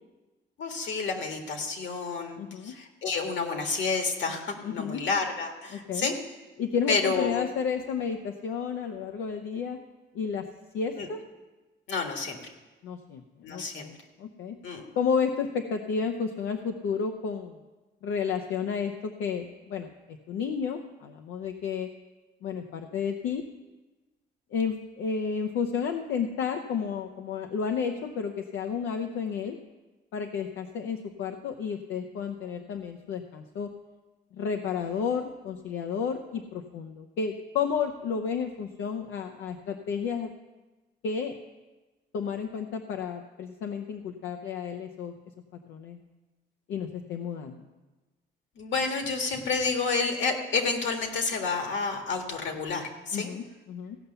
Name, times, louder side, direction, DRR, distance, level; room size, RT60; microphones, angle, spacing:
voice 1, 0.6-6.1 6.9-7.5 11.0-11.1 11.9-12.5 13.4-13.9 14.6-14.9 48.6-53.3, left 4 dB, 65° left, 4 dB, 1.8 m, -30 dB
voice 2, 2.4-2.8 4.6-5.0 5.7-6.1 6.6-9.8 10.1-10.5 10.7-11.2 12.8-14.6 15.0-17.6 18.0-21.9 22.4-23.4 24.5-29.6 30.1-33.7 34.3-40.3 41.0-41.3 42.1-45.2 45.7-46.1 46.7-47.6 53.1-54.0, left 6 dB, 85° left, 5 dB, 0.7 m, -31 dB
16.0 x 5.7 x 6.8 m, 1.2 s
cardioid pair, 90°, 20 cm